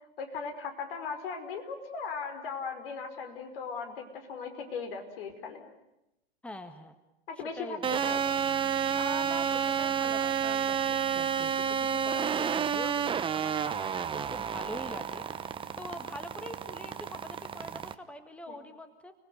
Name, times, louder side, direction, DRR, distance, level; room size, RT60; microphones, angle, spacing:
voice 1, 0.2-5.6 7.3-7.8 8.1-8.2 18.5-18.6, left 5 dB, 65° left, 6 dB, 5.3 m, -38 dB
voice 2, 6.4-7.0 7.6-8.3 8.9-13.0 13.3-15.3 15.8-19.1, left 1 dB, 5° left, 9 dB, 1.6 m, -44 dB
sound 1, 7.8-17.9, right 7 dB, 15° right, 1.1 m, -30 dB
30.0 x 19.0 x 9.4 m, 0.90 s
hypercardioid pair, 110°, 31 cm